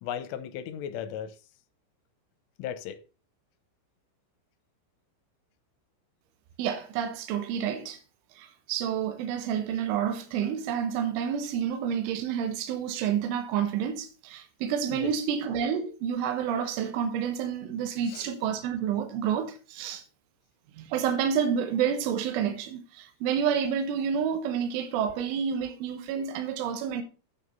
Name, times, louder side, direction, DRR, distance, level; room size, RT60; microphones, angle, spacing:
voice 1, 0.0-1.4 2.6-3.0 14.9-15.1 18.0-18.3, left 9 dB, 85° left, 3.4 m, -36 dB
voice 2, 6.6-8.0 8.4-20.0 20.8-27.0, right 8 dB, 80° right, 3.5 m, -29 dB
9.4 x 6.7 x 5.5 m
omnidirectional pair, 5.7 m